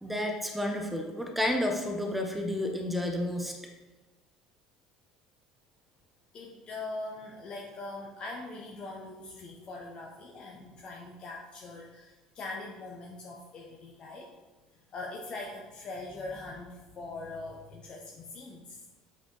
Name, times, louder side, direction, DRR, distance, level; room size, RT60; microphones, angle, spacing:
voice 1, 0.0-3.6, left 1 dB, 5° right, 4 dB, 1.3 m, -31 dB
voice 2, 6.3-14.3 14.7-18.8, left 2 dB, 40° left, -1 dB, 1.0 m, -42 dB
7.9 x 5.1 x 4.2 m, 1.2 s
figure-of-eight pair, 65°, 2 cm